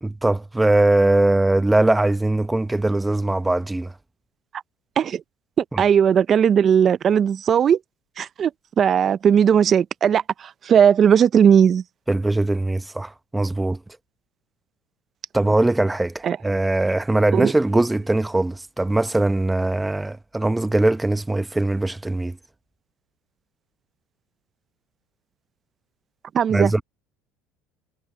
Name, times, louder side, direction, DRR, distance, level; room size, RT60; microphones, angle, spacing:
voice 1, 0.0-3.9 5.7-5.8 12.1-13.8 15.3-22.4 26.5-26.8, right 2 dB, 10° right, 0.8 m, -21 dB
voice 2, 5.8-7.8 8.2-8.5 8.8-10.2 10.7-11.8 16.2-16.4 17.3-17.5 26.3-26.7, right 8 dB, 35° right, 0.5 m, -17 dB
supercardioid pair, 125°, 0 cm